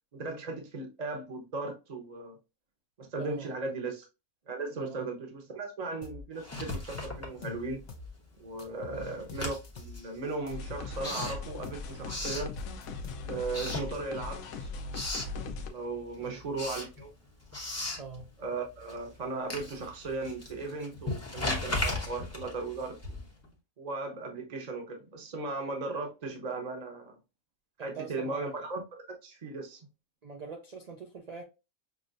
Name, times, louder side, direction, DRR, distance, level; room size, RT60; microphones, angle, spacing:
voice 1, 0.1-2.4 3.0-4.1 4.5-7.8 8.4-12.5 13.3-14.7 15.7-17.1 18.4-23.3 23.8-27.2 27.8-28.8 29.2-29.8, right 3 dB, 35° right, 0.8 m, -37 dB
voice 2, 3.2-3.5 4.8-5.1 8.9-9.2 16.2-16.4 18.0-18.3 27.8-28.7 30.2-31.4, right 5 dB, 60° right, 0.4 m, -43 dB
sound 1, 6.0-6.3 6.7-8.1 8.6-10.0 10.5-11.9 12.3-13.6, left 4 dB, 75° left, 0.4 m, -45 dB
Writing, 6.4-8.0 8.3-13.1 13.4-14.4 14.7-15.4 15.8-23.5, left 2 dB, 15° left, 0.7 m, -38 dB
sound 2, 10.5-15.7, left 3 dB, 90° left, 1.1 m, -39 dB
6.0 x 2.1 x 2.5 m
omnidirectional pair, 1.5 m